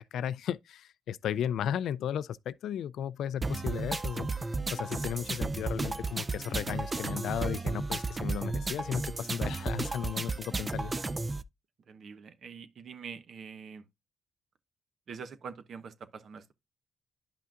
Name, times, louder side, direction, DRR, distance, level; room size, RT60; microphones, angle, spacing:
voice 1, 0.0-4.3 4.7-10.9, left 9 dB, 80° left, 0.3 m, -35 dB
sound 1, 3.4-11.4, right 3 dB, 25° right, 0.5 m, -33 dB
voice 2, 11.9-13.8 15.1-16.5, right 6 dB, 65° right, 1.0 m, -45 dB
10.5 x 5.7 x 2.4 m
cardioid pair, 70°, 0 cm